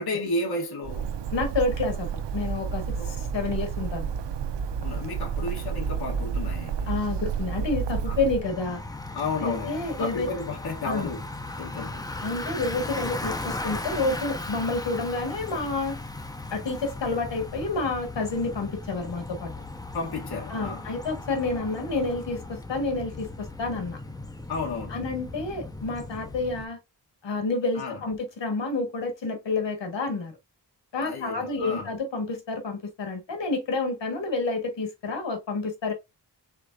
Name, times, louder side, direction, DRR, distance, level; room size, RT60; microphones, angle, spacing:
voice 1, 0.0-1.1 3.0-3.2 4.8-6.9 8.1-8.2 9.1-11.3 11.6-12.0 19.9-20.9 24.5-25.0 27.7-28.0 31.0-31.9, left 3 dB, 60° left, 1.3 m, -32 dB
Bird, 0.8-8.5, right 6 dB, 75° right, 0.6 m, -30 dB
voice 2, 1.3-4.1 6.9-8.8 9.4-10.3 10.9-11.1 12.2-16.0 16.5-19.5 20.5-24.0 24.9-26.8 27.2-30.3 30.9-35.9, left 3 dB, 90° left, 1.6 m, -29 dB
Bicycle, 8.4-26.7, left 2 dB, 10° left, 0.4 m, -37 dB
5.0 x 3.8 x 2.5 m
wide cardioid pair, 170°, 43 cm